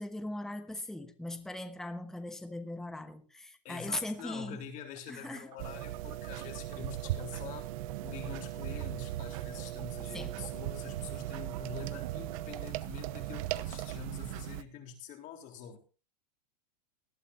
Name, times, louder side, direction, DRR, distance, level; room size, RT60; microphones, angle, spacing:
voice 1, 0.0-4.6 5.1-5.5 10.1-10.4, left 1 dB, ahead, 1.2 m, -39 dB
voice 2, 3.6-7.7 8.0-15.8, left 7 dB, 40° left, 3.7 m, -46 dB
sound 1, 3.9-7.4 7.7-13.1, right 13 dB, 80° right, 2.3 m, -52 dB
sound 2, 5.6-14.6, right 14 dB, 55° right, 0.8 m, -38 dB
19.0 x 12.0 x 2.7 m
supercardioid pair, 140°, 21 cm